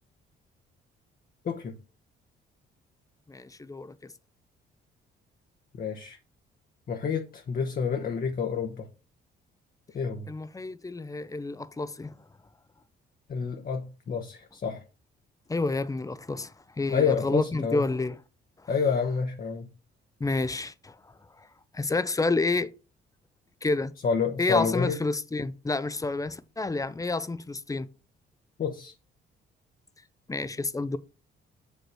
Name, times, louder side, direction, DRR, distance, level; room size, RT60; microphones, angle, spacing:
voice 1, 3.3-3.9 10.3-12.1 15.5-18.2 20.2-21.0 21.7-22.7 23.6-23.9 24.4-27.9 30.3-31.0, left 3 dB, 15° left, 0.6 m, -29 dB
voice 2, 5.8-6.2 6.9-8.9 9.9-10.3 13.3-14.8 16.9-17.9 18.7-19.7 24.0-25.0 28.6-28.9, left 6 dB, 45° left, 1.1 m, -28 dB
6.0 x 5.3 x 4.7 m
cardioid pair, 90°, 20 cm